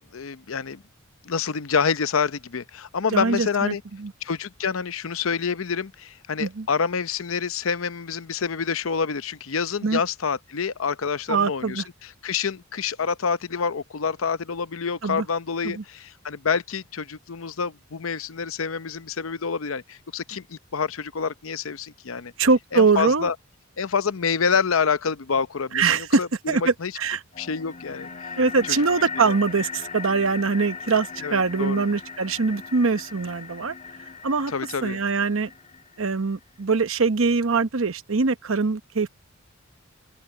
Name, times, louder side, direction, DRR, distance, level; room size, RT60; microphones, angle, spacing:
voice 1, 0.1-0.8 1.2-3.8 4.2-22.3 22.7-23.3 23.8-26.3 26.8-26.9 27.4-28.1 29.2-29.3 31.2-31.8 34.5-35.0, left 6 dB, 90° left, 0.7 m, -27 dB
voice 2, 3.1-4.1 6.4-6.7 9.8-10.0 11.3-11.9 15.0-15.3 15.6-15.8 22.4-23.3 25.7-26.2 26.5-27.2 28.4-33.7 34.2-34.5 34.8-35.5 36.0-39.1, right 4 dB, 75° right, 0.9 m, -23 dB
sound 1, 27.3-36.3, left 5 dB, 40° left, 1.7 m, -38 dB
open air
head